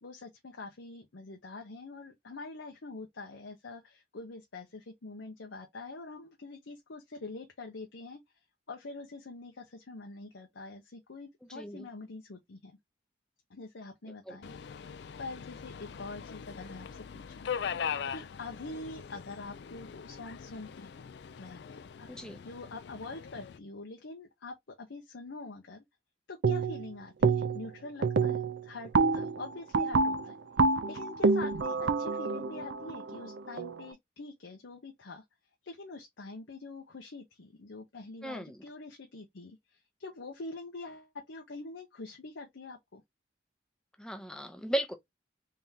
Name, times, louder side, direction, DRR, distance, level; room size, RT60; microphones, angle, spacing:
voice 1, 0.0-8.2 8.7-12.7 13.5-14.6 15.2-17.5 18.1-21.0 21.4-22.1 22.4-25.8 26.3-35.2 35.6-43.0, left 3 dB, 85° left, 0.8 m, -45 dB
voice 2, 11.5-11.9 14.1-14.4 22.1-22.4 38.2-38.6 44.0-44.9, right 1 dB, 5° left, 0.6 m, -36 dB
Subway metro underground, 14.4-23.6, left 7 dB, 65° left, 0.4 m, -41 dB
sound 1, 26.4-26.9 27.2-27.7 28.0-33.8, right 4 dB, 75° right, 0.5 m, -28 dB
3.7 x 3.4 x 2.7 m
head